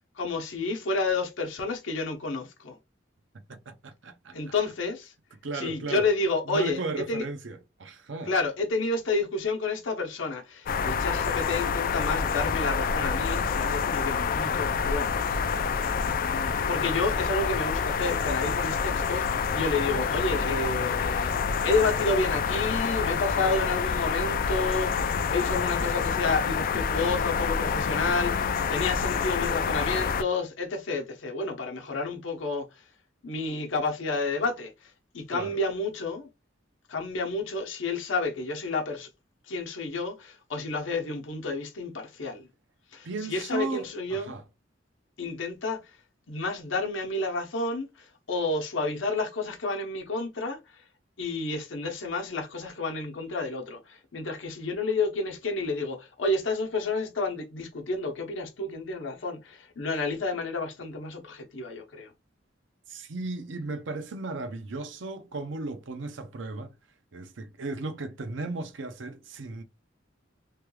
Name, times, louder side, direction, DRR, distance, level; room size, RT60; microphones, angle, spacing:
voice 1, 0.2-2.8 4.3-5.1 5.5-7.2 8.3-15.2 16.7-21.3 21.6-32.7 33.2-36.3 36.9-39.1 39.5-42.5 42.9-44.4 45.2-45.8 46.3-50.6 51.2-62.1, left 3 dB, 80° left, 0.8 m, -30 dB
voice 2, 3.5-4.5 5.4-6.1 6.5-8.4 35.3-35.6 43.0-44.4 62.9-66.7 67.1-69.6, right 3 dB, 75° right, 0.6 m, -36 dB
sound 1, 10.7-30.2, left 6 dB, 50° left, 0.3 m, -27 dB
3.1 x 2.3 x 3.1 m
head